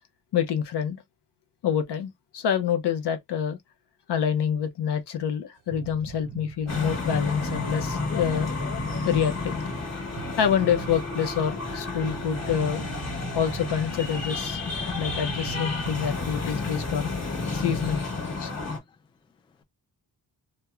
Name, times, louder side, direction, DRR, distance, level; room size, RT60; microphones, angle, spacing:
voice 1, 0.3-1.0 1.6-3.6 4.1-8.5 9.0-9.6 10.4-12.9 13.3-14.6 15.0-17.1 17.5-18.0 18.4-18.5, left 8 dB, 75° left, 0.6 m, -27 dB
sound 1, 5.7-16.2, right 10 dB, 75° right, 0.5 m, -42 dB
sound 2, 6.7-18.8, left 3 dB, 40° left, 1.1 m, -31 dB
voice 2, 17.9-19.6, left 5 dB, 15° left, 0.3 m, -59 dB
2.9 x 2.1 x 2.3 m
wide cardioid pair, 110°, 42 cm